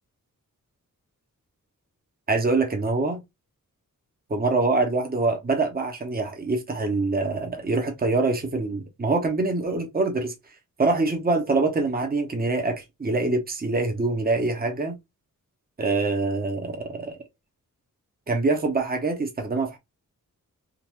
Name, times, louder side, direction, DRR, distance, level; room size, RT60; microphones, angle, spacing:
voice 1, 2.3-3.2 4.3-10.3 10.8-14.9 15.8-17.2 18.3-19.8, right 3 dB, 25° right, 0.9 m, -24 dB
3.7 x 2.5 x 3.0 m
wide cardioid pair, 110°, 33 cm